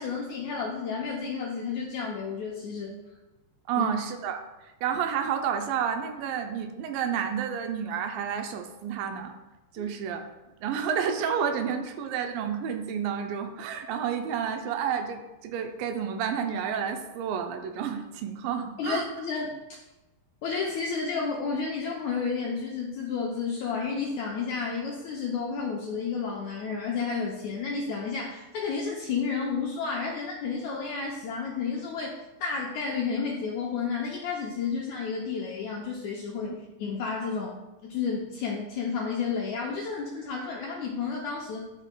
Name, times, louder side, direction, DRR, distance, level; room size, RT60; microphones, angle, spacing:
voice 1, 0.0-2.9 3.8-3.9 9.8-9.9 18.8-19.8 20.4-41.7, left 5 dB, 80° left, -2 dB, 1.7 m, -31 dB
voice 2, 3.7-9.3 9.7-10.3 10.6-19.1 36.5-36.6, right 7 dB, 80° right, 5 dB, 2.2 m, -30 dB
11.5 x 4.9 x 2.2 m, 1.0 s
omnidirectional pair, 4.0 m